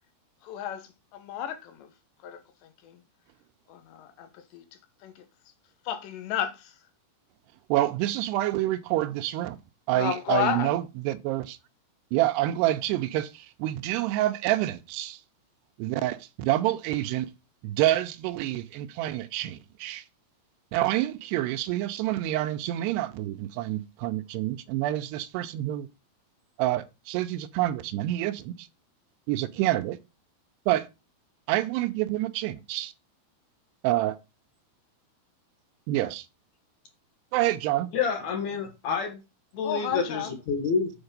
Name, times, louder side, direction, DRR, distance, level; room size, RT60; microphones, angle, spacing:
voice 1, 0.4-0.8 1.1-1.9 2.2-2.4 2.8-3.0 3.7-4.6 5.0-5.2 5.9-6.7 9.9-10.7 39.6-40.4, left 9 dB, 85° left, 3.4 m, -31 dB
voice 2, 7.7-9.6 9.9-11.6 12.1-15.2 15.8-17.3 17.6-20.0 20.7-25.9 26.6-28.7 29.3-30.0 30.7-30.9 31.5-32.9 33.8-34.2 35.9-36.3 37.3-37.9, right 15 dB, 85° right, 2.6 m, -27 dB
voice 3, 37.9-39.2 39.5-40.9, left 5 dB, 55° left, 2.2 m, -28 dB
8.0 x 4.7 x 5.1 m
omnidirectional pair, 4.9 m